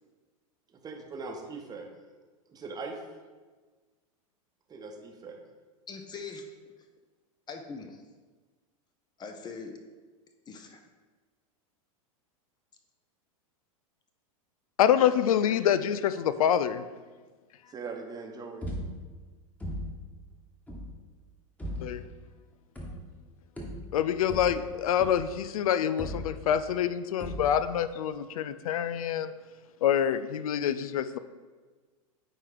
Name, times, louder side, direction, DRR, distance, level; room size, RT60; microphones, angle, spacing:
voice 1, 0.8-1.9 2.5-3.0 4.7-5.4 17.7-18.7, right 4 dB, 20° right, 3 dB, 0.9 m, -40 dB
voice 2, 5.9-6.5 7.5-8.0 9.2-9.8 10.5-10.8, left 4 dB, 25° left, 5 dB, 0.6 m, -41 dB
voice 3, 14.8-16.8 21.8-22.0 23.9-29.3 29.8-31.2, left 9 dB, 80° left, 14 dB, 0.4 m, -26 dB
sound 1, 18.6-19.2 19.6-20.1 20.7-21.0 21.6-22.1 22.8-23.3 23.6-25.5 26.0-26.7 27.2-27.8, equal, 10° left, 1.2 m, -38 dB
9.0 x 3.1 x 3.9 m, 1.4 s
hypercardioid pair, 105°, 18 cm